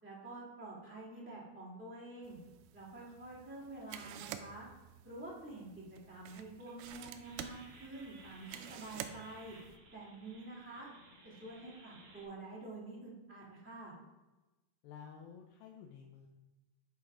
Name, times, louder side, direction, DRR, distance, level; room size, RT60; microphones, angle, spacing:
voice 1, 0.0-2.4 2.7-4.7 5.0-9.6 9.9-10.9 11.2-13.9, right 2 dB, 5° right, -8 dB, 1.0 m, -48 dB
sound 1, 2.2-9.8, right 10 dB, 85° right, 1.8 m, -50 dB
sound 2, 6.6-12.2, right 2 dB, 60° right, 2.5 m, -58 dB
voice 2, 14.8-16.3, left 7 dB, 80° left, 2 dB, 2.4 m, -52 dB
9.4 x 5.1 x 3.7 m, 1.1 s
omnidirectional pair, 4.3 m